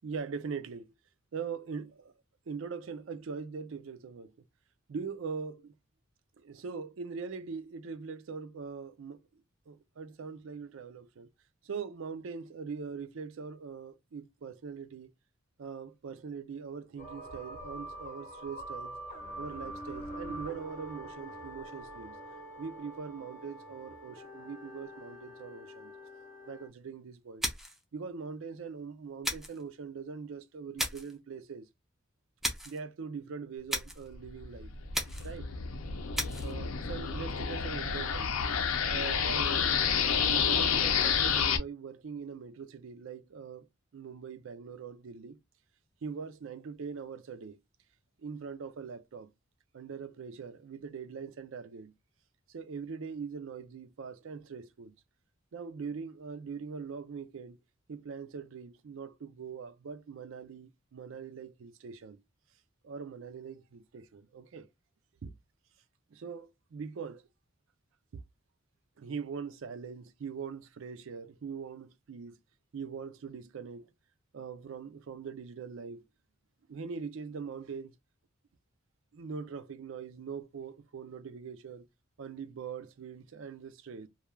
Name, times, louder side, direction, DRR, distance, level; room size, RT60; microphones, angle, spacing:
voice 1, 0.0-0.9 1.3-2.1 2.5-4.3 4.9-5.7 6.4-11.3 11.6-15.1 15.6-19.0 19.4-22.2 22.6-25.9 26.5-27.5 27.9-31.7 32.6-34.7 35.2-35.5 36.4-38.4 38.9-39.7 40.0-43.7 43.9-45.4 46.0-47.6 48.2-49.3 49.7-51.9 52.5-54.9 55.5-57.6 57.9-62.2 62.8-64.7 65.2-65.3 66.1-67.3 68.1-68.2 69.0-72.4 72.7-73.9 74.3-76.1 76.7-77.9 79.1-81.9 82.2-84.1, right 5 dB, 70° right, 0.4 m, -42 dB
sound 1, 17.0-26.7, right 1 dB, 40° left, 0.7 m, -45 dB
sound 2, 27.4-27.8 29.2-29.6 30.8-31.2 32.4-32.8 33.7-34.1 34.9-35.4 36.1-36.5, equal, ahead, 0.4 m, -35 dB
sound 3, 34.3-41.6, left 7 dB, 80° left, 0.5 m, -29 dB
2.3 x 2.2 x 3.0 m
head